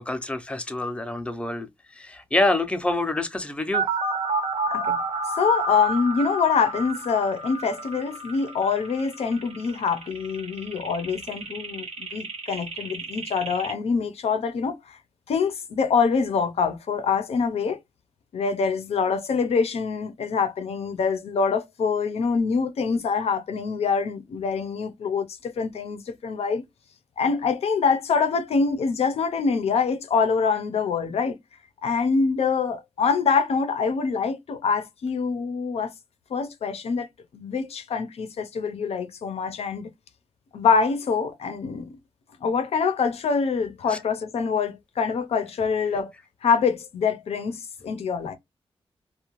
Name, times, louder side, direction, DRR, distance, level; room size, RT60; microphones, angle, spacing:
voice 1, 0.0-3.9 43.9-44.0, left 2 dB, 10° left, 0.5 m, -27 dB
sound 1, 3.7-13.7, right 3 dB, 85° right, 0.8 m, -31 dB
voice 2, 5.4-15.0 15.3-17.8 18.3-26.6 27.2-31.4 31.8-35.9 36.3-37.1 37.3-39.9 40.5-41.9 42.4-46.1 46.4-48.3, left 5 dB, 90° left, 0.6 m, -25 dB
2.6 x 2.2 x 2.9 m
wide cardioid pair, 125°, 10 cm